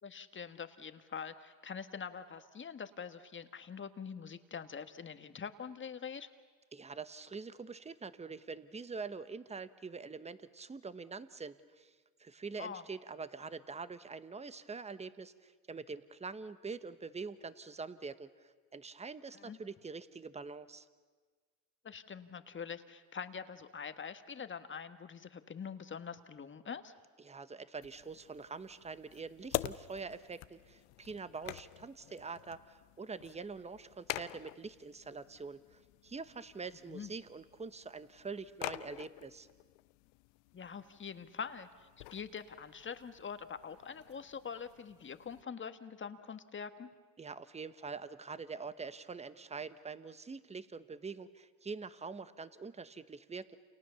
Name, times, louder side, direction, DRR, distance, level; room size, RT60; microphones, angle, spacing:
voice 1, 0.0-6.3 12.6-12.8 19.3-19.6 21.8-26.9 36.9-37.1 40.5-46.9, left 6 dB, 25° left, 9 dB, 1.6 m, -44 dB
voice 2, 6.7-20.9 27.2-39.5 47.2-53.6, right 4 dB, 15° right, 13 dB, 1.1 m, -45 dB
sound 1, 27.8-45.4, left 19 dB, 75° left, 0.9 m, -47 dB
29.0 x 28.5 x 7.0 m, 1.5 s
supercardioid pair, 95°, 43 cm